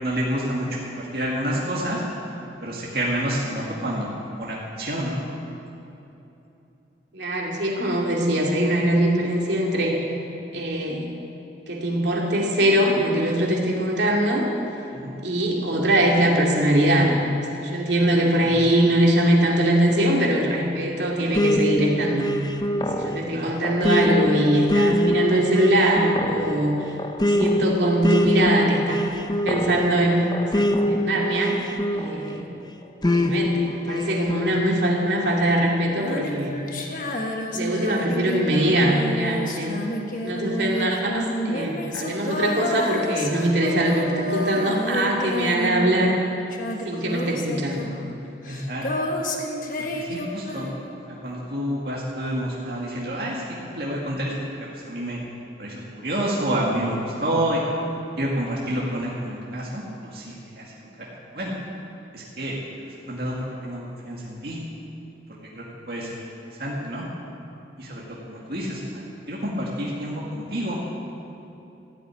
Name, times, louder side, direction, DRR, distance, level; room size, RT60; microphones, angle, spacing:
voice 1, 0.0-2.0 2.6-4.1 4.4-5.2 14.9-15.2 18.4-18.6 23.3-23.5 48.5-49.1 49.9-50.7 51.0-53.4 53.7-54.3 54.7-55.2 55.6-57.7 58.2-61.5 62.1-64.6 65.5-67.0 67.8-70.8, equal, 60° right, -5 dB, 2.1 m, -29 dB
voice 2, 7.1-10.0 10.5-11.1 11.7-14.5 15.2-17.1 17.5-22.3 22.8-26.8 27.2-29.1 29.4-32.4 33.1-36.6 37.5-39.8 40.2-46.2 46.8-47.9, right 1 dB, 80° right, -2 dB, 2.5 m, -22 dB
sound 1, 21.3-32.4 33.0-34.6, left 1 dB, 25° left, 0.7 m, -24 dB
Female singing, 35.9-46.3 46.5-51.0, left 1 dB, 45° left, 1.4 m, -30 dB
14.5 x 8.3 x 9.8 m, 2.9 s
head